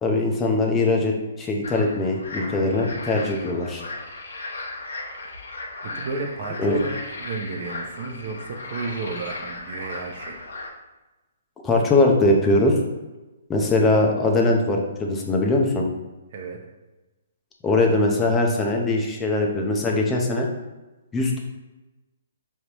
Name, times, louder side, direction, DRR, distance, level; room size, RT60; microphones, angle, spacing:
voice 1, 0.0-3.8 6.6-6.8 11.6-12.7 13.5-15.8 17.6-20.5 21.1-21.4, left 2 dB, 15° left, 0 dB, 0.7 m, -21 dB
sound 1, 1.6-10.7, left 2 dB, 80° left, 1.1 m, -36 dB
voice 2, 5.8-10.4 16.3-16.6, right 3 dB, 50° right, 1 dB, 0.7 m, -32 dB
5.1 x 3.2 x 3.0 m, 1.1 s
hypercardioid pair, 145°, 0 cm